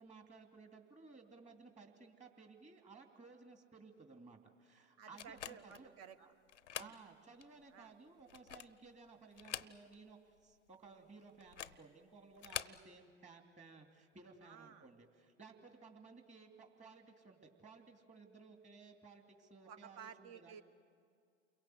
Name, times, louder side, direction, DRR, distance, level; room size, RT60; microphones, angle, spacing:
voice 1, 0.0-6.3 6.8-20.6, right 4 dB, 20° right, 4 dB, 2.7 m, -58 dB
voice 2, 5.0-6.2 6.7-6.9 7.7-7.9 14.4-14.9 19.7-20.6, right 8 dB, 45° right, 11 dB, 1.4 m, -54 dB
sound 1, 5.2-5.9 6.5-7.0 7.4-7.5 8.2-8.8 9.3-10.1 10.4-10.5 11.4-11.8 12.4-12.8, left 10 dB, 85° left, 0.7 m, -46 dB
29.0 x 22.5 x 7.9 m, 2.3 s
hypercardioid pair, 90°, 35 cm